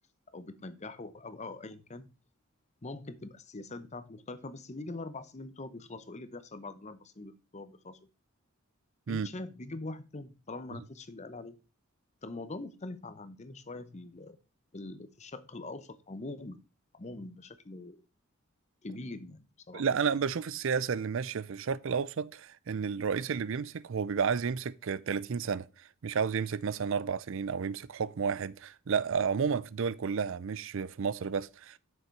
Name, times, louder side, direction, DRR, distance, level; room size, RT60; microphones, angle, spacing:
voice 1, 0.3-2.1 2.8-8.0 9.1-11.6 12.2-14.4 14.7-16.6 16.9-18.0 18.8-19.8, left 2 dB, 35° left, 0.8 m, -43 dB
voice 2, 19.7-31.8, right 6 dB, 65° right, 0.5 m, -31 dB
7.1 x 6.6 x 4.5 m
head